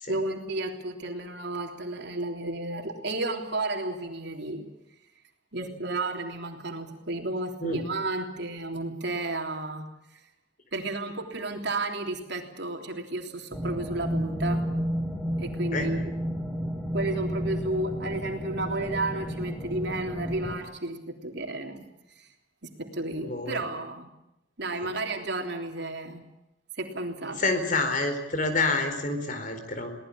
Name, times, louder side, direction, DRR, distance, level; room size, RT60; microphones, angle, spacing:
voice 1, 0.1-4.7 5.5-9.9 10.7-14.6 15.4-16.1 16.9-21.8 22.2-22.3 22.6-24.1 24.6-26.2 26.8-27.4, right 2 dB, 60° right, 3 dB, 3.4 m, -32 dB
sound 1, 13.5-20.6, equal, 5° left, 2.6 m, -31 dB
voice 2, 23.2-23.6 27.4-29.9, left 3 dB, 45° left, 7 dB, 4.4 m, -28 dB
23.0 x 19.0 x 8.7 m, 0.88 s
head